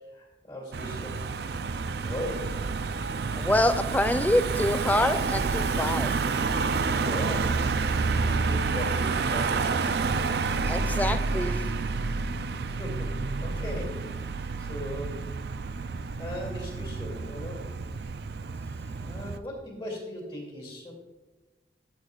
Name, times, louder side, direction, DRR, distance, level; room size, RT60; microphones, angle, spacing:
voice 1, 0.1-1.2 2.0-2.6 6.9-7.6 8.1-10.1 12.8-14.0 14.6-15.2 16.2-17.7 19.0-20.9, left 1 dB, 30° left, -2 dB, 2.3 m, -38 dB
Car passing by / Engine, 0.7-19.4, right 4 dB, 65° right, 0.4 m, -29 dB
voice 2, 3.4-6.2 10.6-11.6, left 1 dB, 10° left, 10 dB, 0.3 m, -26 dB
13.0 x 8.0 x 2.4 m, 1.2 s
head